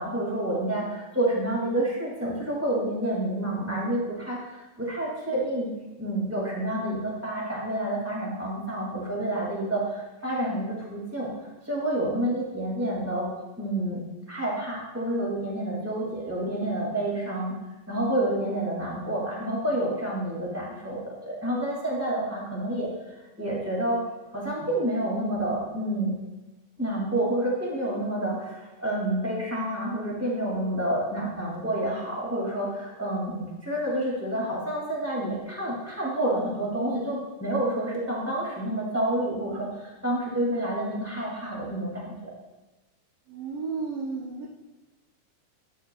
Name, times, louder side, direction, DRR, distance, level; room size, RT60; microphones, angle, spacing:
voice 1, 0.0-5.7 6.0-13.3 13.6-14.0 14.3-17.5 17.9-24.0 24.3-26.1 26.8-42.3, right 1 dB, 10° right, -4 dB, 0.7 m, -29 dB
voice 2, 43.3-44.5, right 4 dB, 80° right, -3 dB, 1.3 m, -33 dB
10.5 x 8.2 x 2.2 m, 1.1 s
omnidirectional pair, 3.9 m